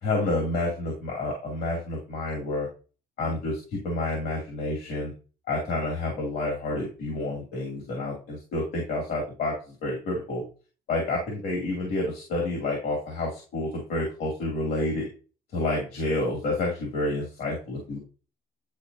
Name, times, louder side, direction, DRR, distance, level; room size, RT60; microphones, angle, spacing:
voice 1, 0.0-2.7 3.2-5.1 5.5-10.4 10.9-15.1 15.5-18.0, left 2 dB, 70° left, -1 dB, 2.9 m, -29 dB
10.5 x 4.3 x 2.8 m, 0.35 s
cardioid pair, 110°, 17 cm